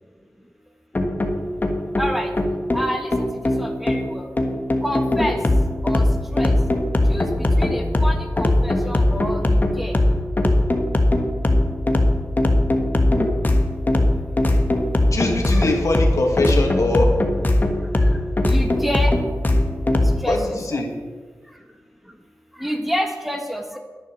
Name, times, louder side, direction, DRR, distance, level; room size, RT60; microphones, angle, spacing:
sound 1, 0.9-20.2, left 1 dB, 30° left, 1.5 m, -20 dB
voice 1, 2.0-2.3 2.7-3.2 3.6-4.3 4.8-5.4 5.8-6.1 6.3-6.5 7.1-9.9 15.5-15.7 18.0-18.1 18.4-19.2 20.2-20.3 20.7-20.8 22.6-23.8, equal, ahead, 3 dB, 1.4 m, -28 dB
voice 2, 15.1-17.2 20.3-20.9, left 2 dB, 60° left, 1 dB, 2.3 m, -22 dB
11.0 x 10.0 x 6.6 m, 1.4 s
wide cardioid pair, 95°, 6 cm